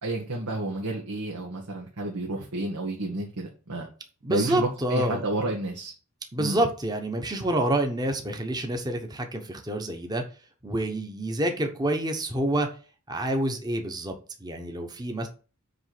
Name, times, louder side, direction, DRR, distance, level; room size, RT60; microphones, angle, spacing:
voice 1, 0.0-3.9 4.3-5.9 6.4-6.6, right 2 dB, 85° right, -1 dB, 1.5 m, -30 dB
voice 2, 4.2-5.2 6.3-10.2 10.6-12.7 13.1-14.1 14.4-15.3, right 1 dB, 20° right, 4 dB, 1.0 m, -27 dB
7.8 x 3.2 x 5.9 m, 0.36 s
head